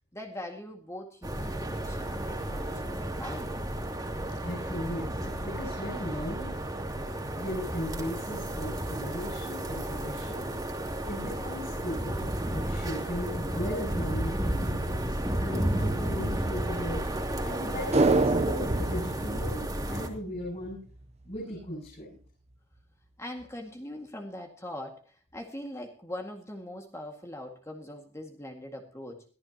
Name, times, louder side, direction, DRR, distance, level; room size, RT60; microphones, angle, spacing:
voice 1, 0.1-3.7 23.2-29.3, left 1 dB, 15° left, 3 dB, 2.0 m, -42 dB
sound 1, 1.2-20.1, right 1 dB, 20° right, 2.7 m, -32 dB
voice 2, 4.4-6.6 7.3-10.5 11.0-17.0 17.4-20.8 21.2-22.2, equal, 35° left, -4 dB, 7.5 m, -38 dB
sound 2, 17.9-20.4 20.7-20.8, right 2 dB, 35° right, 0.7 m, -26 dB
22.0 x 15.5 x 2.9 m, 0.39 s
head